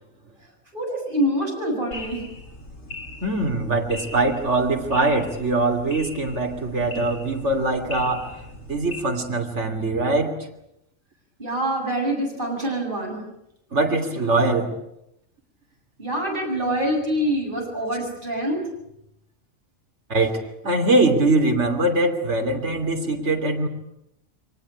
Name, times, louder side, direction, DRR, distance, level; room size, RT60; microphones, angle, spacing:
voice 1, 0.7-2.3 11.4-13.3 16.0-18.6, right 1 dB, 40° right, -1 dB, 8.3 m, -25 dB
sound 1, 1.9-9.0, left 2 dB, 60° left, 3.5 m, -40 dB
voice 2, 3.2-8.4 8.7-10.4 13.7-14.7 20.1-23.7, right 2 dB, 60° right, 3 dB, 3.3 m, -22 dB
23.5 x 19.5 x 9.8 m, 0.82 s
omnidirectional pair, 1.4 m